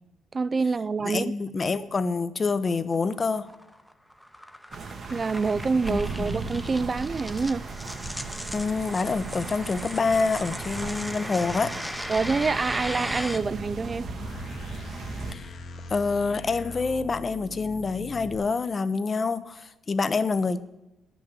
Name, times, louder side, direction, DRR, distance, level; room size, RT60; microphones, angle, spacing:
voice 1, 0.3-1.3 5.1-7.7 12.1-14.1, right 4 dB, 35° right, 0.3 m, -26 dB
voice 2, 1.0-3.5 5.9-6.4 8.5-11.8 15.3-15.5 15.9-20.6, left 4 dB, 35° left, 0.7 m, -27 dB
sound 1, 2.7-13.4, equal, 5° left, 0.8 m, -38 dB
sound 2, 4.7-15.3, right 4 dB, 55° right, 1.1 m, -37 dB
sound 3, 12.2-18.4, left 3 dB, 60° left, 1.3 m, -41 dB
10.5 x 6.2 x 8.0 m
cardioid pair, 90°, 0 cm